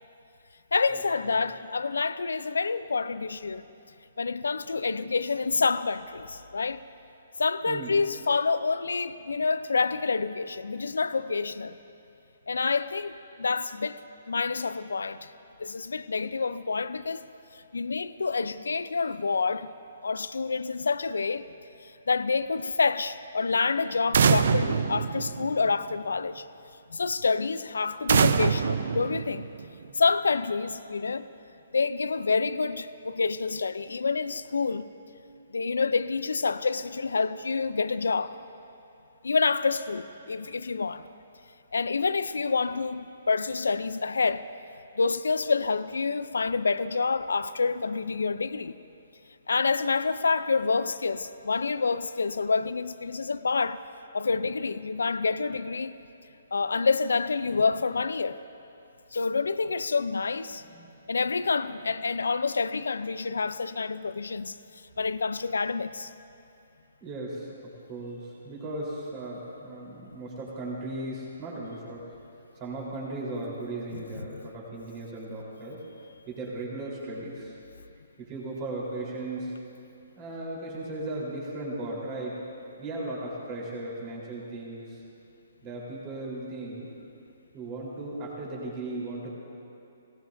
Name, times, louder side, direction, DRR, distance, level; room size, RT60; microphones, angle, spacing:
voice 1, 0.7-3.7 4.2-6.8 7.4-11.8 12.5-14.0 14.3-15.3 15.6-17.3 17.7-19.7 20.0-21.4 21.8-26.5 26.9-29.5 29.9-31.3 31.7-34.9 35.5-38.4 39.2-41.0 41.7-44.4 45.0-48.8 49.5-53.8 54.1-55.9 56.5-58.4 59.1-60.6 61.1-64.6 65.0-66.1 73.9-74.4, left 4 dB, 80° left, 14 dB, 0.4 m, -28 dB
sound 1, 24.1-25.9 28.1-29.9, right 6 dB, 65° right, 0.5 m, -24 dB
voice 2, 67.0-67.5 67.9-72.0 72.6-75.8 76.3-77.5 78.2-79.5 80.2-82.3 82.8-84.8 85.6-86.9 87.5-89.3, right 2 dB, 30° right, -5 dB, 3.7 m, -36 dB
19.5 x 17.5 x 2.6 m, 2.7 s
hypercardioid pair, 140°, 0 cm